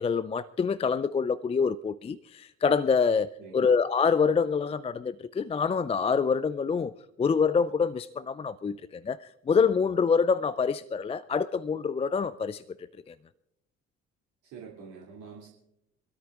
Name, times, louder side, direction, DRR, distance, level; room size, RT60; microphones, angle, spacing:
voice 1, 0.0-6.9 7.2-12.6 13.1-13.2, left 5 dB, 20° left, 0.4 m, -26 dB
voice 2, 3.4-3.7 14.4-15.5, right 6 dB, 60° right, 2.7 m, -46 dB
27.0 x 13.0 x 2.4 m
figure-of-eight pair, 50°, 34 cm